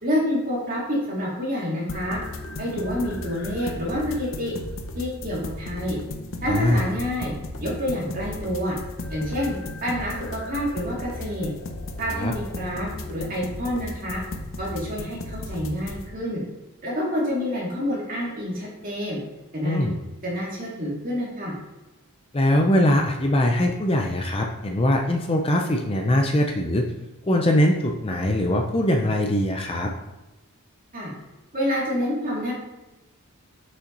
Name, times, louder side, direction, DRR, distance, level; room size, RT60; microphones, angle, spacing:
voice 1, 0.0-2.2 2.6-4.5 4.9-6.0 6.4-7.3 7.6-8.8 9.1-9.5 9.8-11.5 12.0-14.2 14.6-16.4 16.8-19.2 19.5-19.8 20.2-21.5 30.9-31.1 31.5-32.5, equal, 40° right, -4 dB, 2.3 m, -28 dB
sound 1, 1.9-16.0, left 2 dB, 60° left, 0.8 m, -35 dB
voice 2, 6.5-6.9 12.1-12.3 19.6-20.0 22.3-26.8 27.3-29.9, left 1 dB, 25° left, 2 dB, 0.5 m, -22 dB
6.6 x 5.7 x 4.0 m, 1.0 s
head